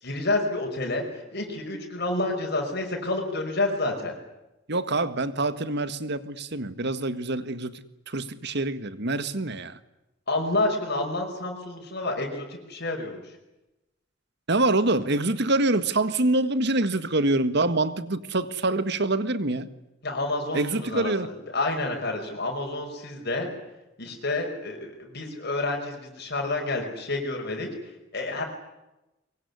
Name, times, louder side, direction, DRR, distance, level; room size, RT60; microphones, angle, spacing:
voice 1, 0.0-4.1 10.3-13.3 20.0-23.5 24.0-28.4, left 2 dB, 55° left, 5.6 m, -29 dB
voice 2, 4.7-9.8 14.5-19.7 20.5-21.3, right 2 dB, 60° right, 1.8 m, -25 dB
24.0 x 24.0 x 9.8 m
head